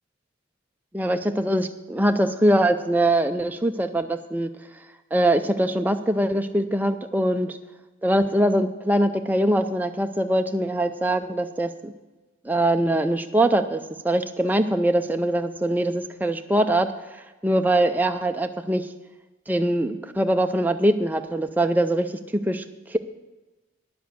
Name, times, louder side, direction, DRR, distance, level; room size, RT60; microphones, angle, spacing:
voice 1, 0.9-4.5 5.1-7.6 8.0-11.9 12.4-18.9 19.5-23.0, right 1 dB, 10° right, 6 dB, 0.4 m, -23 dB
10.0 x 7.3 x 7.7 m, 1.1 s
head